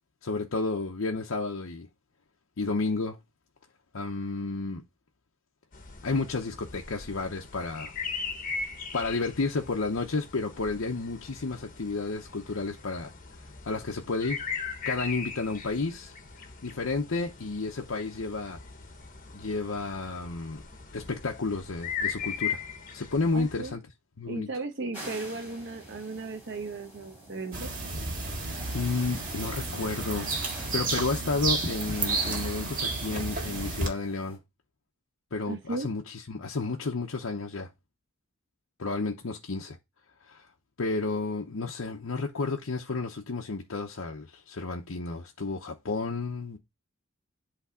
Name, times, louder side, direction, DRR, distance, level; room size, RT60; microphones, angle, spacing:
voice 1, 0.2-1.9 2.6-3.2 3.9-4.8 6.0-7.9 8.9-13.1 13.7-14.4 14.9-16.1 16.6-18.6 19.3-20.6 20.9-22.6 22.9-23.8 24.2-24.5 28.7-30.3 30.7-34.4 35.3-37.7 38.8-39.8 40.3-40.4 40.8-46.6, left 3 dB, 70° left, 0.8 m, -31 dB
sound 1, 5.7-23.7, left 6 dB, 40° left, 1.2 m, -39 dB
voice 2, 23.3-23.7 24.3-27.7 35.5-35.9, right 3 dB, 55° right, 0.9 m, -36 dB
sound 2, 24.9-34.4, right 1 dB, 10° right, 4.1 m, -46 dB
sound 3, 27.5-33.9, right 3 dB, 40° right, 1.9 m, -31 dB
8.3 x 3.4 x 4.9 m
head